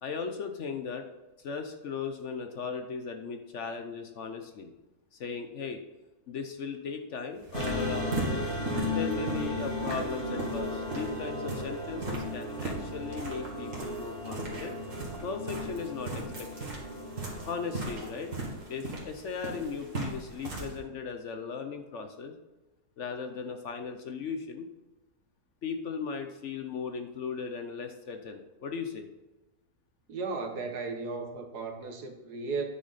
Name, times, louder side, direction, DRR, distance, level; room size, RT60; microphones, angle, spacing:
voice 1, 0.0-1.1 1.4-4.7 5.1-5.8 6.3-8.1 8.9-14.8 15.2-16.7 17.5-18.4 18.7-22.4 23.0-24.7 25.6-29.1, left 5 dB, 55° left, 6 dB, 0.9 m, -37 dB
sound 1, 7.4-20.8, right 2 dB, 50° right, 2.3 m, -39 dB
sound 2, 7.5-18.8, left 1 dB, 30° left, 2.1 m, -36 dB
voice 2, 30.1-32.6, right 4 dB, 75° right, 4 dB, 1.7 m, -35 dB
9.6 x 6.3 x 4.0 m, 1.1 s
omnidirectional pair, 1.7 m